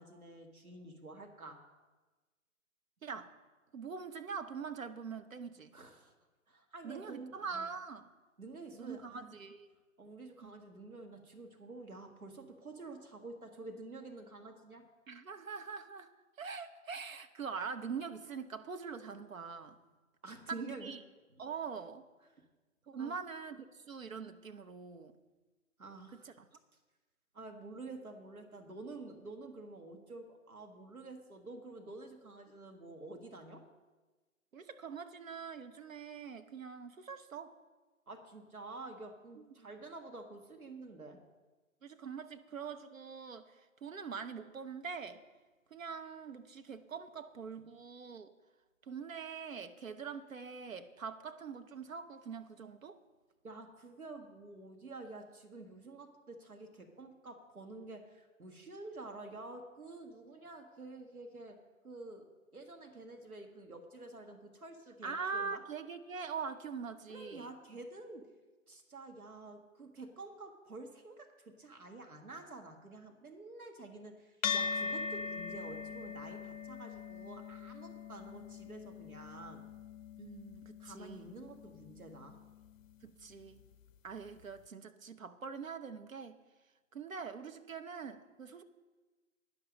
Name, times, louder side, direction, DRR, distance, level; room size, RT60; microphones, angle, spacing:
voice 1, 0.0-1.6 5.7-6.1 6.5-7.7 8.4-9.4 10.0-14.8 20.2-20.9 23.0-23.1 25.8-26.3 27.3-33.6 38.1-41.2 53.4-61.6 61.8-62.3 62.5-65.6 67.1-68.3 68.7-79.6 80.8-82.4, right 2 dB, 90° right, 3 dB, 1.8 m, -49 dB
voice 2, 3.0-3.3 3.7-5.7 6.8-8.1 8.7-9.7 10.4-10.5 15.1-16.1 16.4-19.8 20.5-21.0 21.4-22.0 22.9-25.1 26.1-26.3 34.5-37.5 39.4-39.7 41.8-45.2 45.7-48.3 48.8-53.0 65.0-67.5 80.2-81.3 83.0-83.6 84.0-86.4 86.9-88.6, right 5 dB, 70° right, 8 dB, 1.1 m, -43 dB
sound 1, 74.4-83.1, left 5 dB, 65° left, 0.5 m, -41 dB
11.5 x 10.5 x 5.2 m, 1.3 s
figure-of-eight pair, 140°, 42 cm